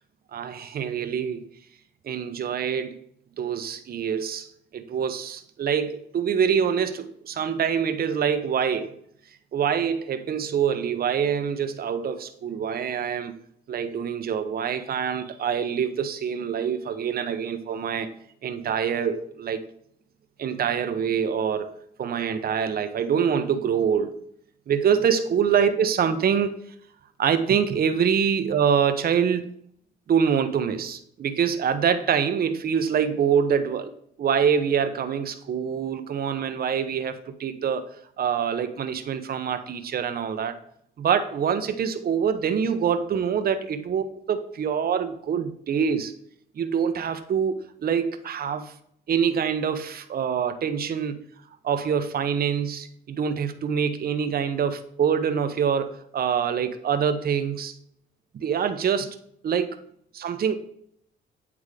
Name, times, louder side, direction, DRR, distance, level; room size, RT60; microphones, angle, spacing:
voice 1, 0.3-1.4 2.0-3.0 3.4-4.5 4.7-8.9 9.5-13.3 13.7-18.1 18.4-19.6 20.4-24.1 24.7-26.6 27.2-29.5 30.1-33.9 34.2-37.9 38.2-40.6 41.0-46.1 46.6-48.7 49.1-51.2 51.6-57.7 58.3-59.8 60.1-60.6, right 7 dB, 50° right, 0.7 m, -25 dB
8.4 x 3.6 x 4.8 m
cardioid pair, 90°, 20 cm